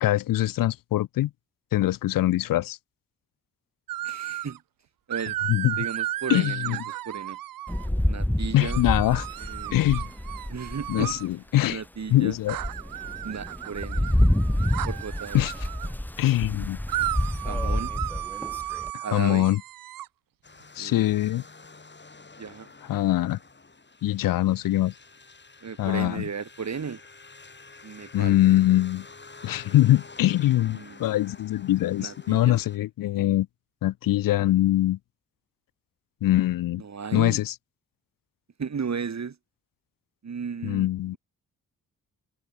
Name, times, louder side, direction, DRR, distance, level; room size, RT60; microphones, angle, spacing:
voice 1, 0.0-1.3 1.7-2.8 5.5-5.8 6.3-6.8 8.5-9.3 9.7-10.0 10.9-11.8 12.1-12.6 15.3-15.5 16.2-16.8 18.9-19.6 20.8-21.4 22.9-23.4 24.0-24.9 25.8-26.2 28.1-29.1 29.4-33.5 33.8-35.0 36.2-36.8 37.1-37.5 40.6-41.2, left 14 dB, 75° left, 0.6 m, -23 dB
sound 1, 3.9-4.6 5.1-7.9 8.6-11.3 12.5-15.9 16.9-20.1, right 14 dB, 80° right, 0.6 m, -34 dB
voice 2, 4.0-4.6 5.1-5.4 5.8-7.4 8.1-8.8 9.4-9.8 10.5-11.2 11.7-12.4 13.2-14.1 14.9-15.4 17.4-17.9 19.0-19.5 20.8-21.2 22.4-22.7 25.6-27.0 27.8-28.4 30.7-31.1 32.0-32.5 36.8-37.4 38.6-39.4 40.2-40.9, right 6 dB, 50° right, 4.0 m, -35 dB
Rain, 7.7-11.2 11.7-11.8 12.3-18.9, left 1 dB, 5° left, 1.9 m, -28 dB
sound 2, 20.4-32.8, left 3 dB, 30° left, 4.6 m, -49 dB
cardioid pair, 55°, 34 cm